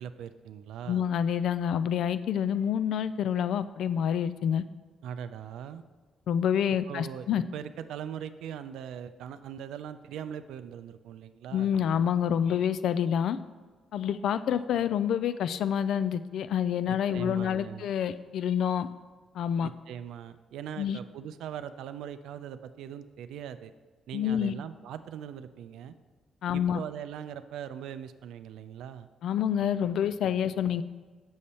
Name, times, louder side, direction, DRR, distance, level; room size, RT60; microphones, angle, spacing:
voice 1, 0.0-1.0 5.0-5.8 6.9-7.3 7.5-11.7 16.9-17.9 19.6-23.7 24.1-25.9 26.5-29.1, right 9 dB, 85° right, 11 dB, 0.4 m, -40 dB
voice 2, 0.9-4.6 6.3-7.4 11.5-13.4 13.9-18.9 19.3-19.7 20.8-21.0 24.1-24.5 26.4-26.8 29.2-30.8, left 8 dB, 75° left, 14 dB, 0.3 m, -27 dB
6.9 x 6.4 x 4.2 m, 1.4 s
cardioid pair, 90°, 0 cm